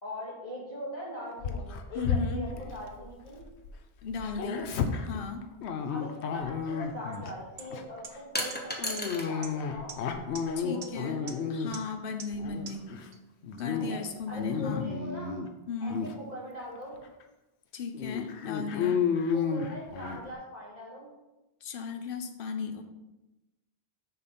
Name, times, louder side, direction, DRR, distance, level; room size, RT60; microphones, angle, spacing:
voice 1, 0.0-3.4 4.5-4.7 5.9-10.0 10.5-11.6 13.7-15.3 15.8-17.0 19.3-21.1, equal, 40° left, -6 dB, 2.2 m, -41 dB
Dog, 1.4-3.7 4.0-7.3 7.7-8.0 8.8-11.9 12.3-13.1 13.4-13.9 14.2-15.5 15.9-16.1 16.8-16.9 17.2-17.3 17.9-20.2, left 6 dB, 90° left, 0.9 m, -32 dB
voice 2, 1.9-2.4 4.0-4.7 5.1-5.5 10.6-11.2 11.5-12.9 13.6-14.9 15.7-16.0 17.7-19.0 21.6-22.8, left 5 dB, 60° left, 6 dB, 0.9 m, -36 dB
sound 1, 7.1-7.2 7.6-7.7 8.0-8.1 8.5-8.6 9.0-9.1 9.4-9.5 9.9-10.0 10.4-10.5 10.8-10.9 11.3-11.4 11.7-11.8 12.2-12.3 12.7-12.8 13.1-13.2 13.6-13.7 14.0-14.1, right 6 dB, 90° right, 1.1 m, -41 dB
sound 2, 8.3-9.3 9.7-10.5, left 1 dB, 10° left, 0.8 m, -35 dB
6.6 x 5.4 x 4.2 m, 1.0 s
omnidirectional pair, 1.1 m